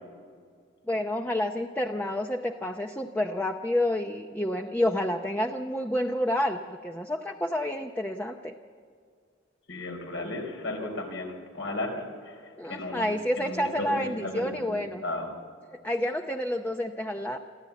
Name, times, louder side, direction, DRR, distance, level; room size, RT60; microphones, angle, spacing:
voice 1, 0.9-8.5 12.6-15.0 15.8-17.4, left 1 dB, 10° left, 4 dB, 0.6 m, -29 dB
voice 2, 9.7-12.3 12.7-13.1 13.4-14.7 15.0-15.3, left 2 dB, 80° left, 3 dB, 4.1 m, -34 dB
23.0 x 14.5 x 8.3 m, 2.1 s
head